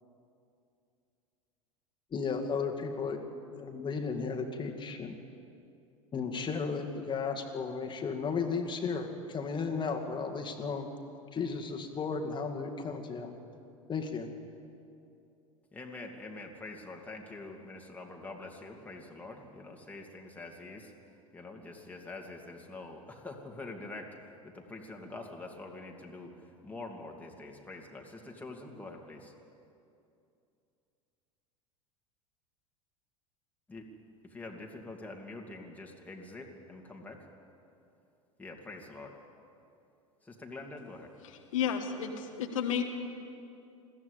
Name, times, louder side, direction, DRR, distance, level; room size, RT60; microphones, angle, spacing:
voice 1, 2.1-5.2 6.1-10.9 11.3-13.4 13.9-14.3, left 5 dB, 25° left, 3 dB, 2.2 m, -34 dB
voice 2, 15.7-20.9 21.3-24.1 24.4-26.3 26.6-29.3 33.7-33.8 34.3-37.2 38.4-39.2 40.2-41.1, left 2 dB, 10° left, 0 dB, 2.7 m, -45 dB
voice 3, 41.2-42.8, left 8 dB, 70° left, 4 dB, 1.6 m, -32 dB
21.0 x 15.5 x 8.5 m, 2.6 s
figure-of-eight pair, 80°, 18 cm